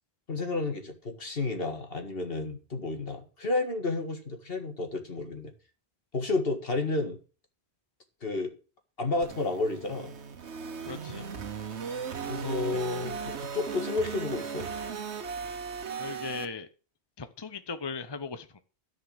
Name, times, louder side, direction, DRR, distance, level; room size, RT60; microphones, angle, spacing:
voice 1, 0.3-5.5 6.1-7.2 8.2-8.5 9.0-10.1 11.9-14.7, left 3 dB, 60° left, 4 dB, 2.3 m, -31 dB
sound 1, 9.2-16.5, right 6 dB, 80° right, 1.4 m, -37 dB
voice 2, 10.8-11.2 16.0-16.7 17.2-18.6, left 4 dB, 25° left, 11 dB, 0.7 m, -38 dB
14.0 x 5.2 x 7.8 m, 0.36 s
omnidirectional pair, 1.1 m